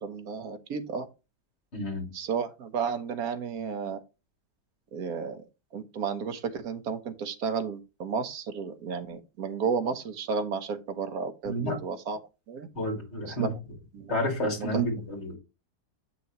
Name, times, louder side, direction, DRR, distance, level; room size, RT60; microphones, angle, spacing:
voice 1, 0.0-1.1 2.1-4.0 4.9-5.4 5.7-12.2 12.5-12.7 13.3-13.6 13.9-14.1 14.7-14.8, right 5 dB, 65° right, 1.4 m, -32 dB
voice 2, 1.7-2.1 11.5-11.8 12.8-13.5 14.1-15.4, equal, 45° left, 2.8 m, -30 dB
7.7 x 6.0 x 3.0 m
omnidirectional pair, 1.7 m